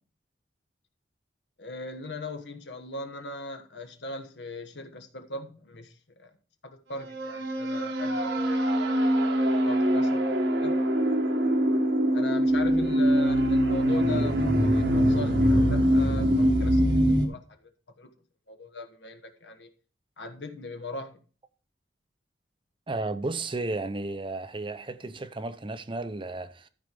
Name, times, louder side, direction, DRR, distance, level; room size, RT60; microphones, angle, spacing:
voice 1, 1.6-5.9 6.2-6.3 6.6-9.0 9.7-10.8 12.1-17.7 18.0-18.1 18.5-19.7 20.2-21.2, left 2 dB, 75° left, 1.3 m, -39 dB
sound 1, 7.0-17.3, equal, 80° right, 1.5 m, -23 dB
voice 2, 22.9-26.7, right 2 dB, 30° right, 0.7 m, -33 dB
12.5 x 4.7 x 5.2 m
head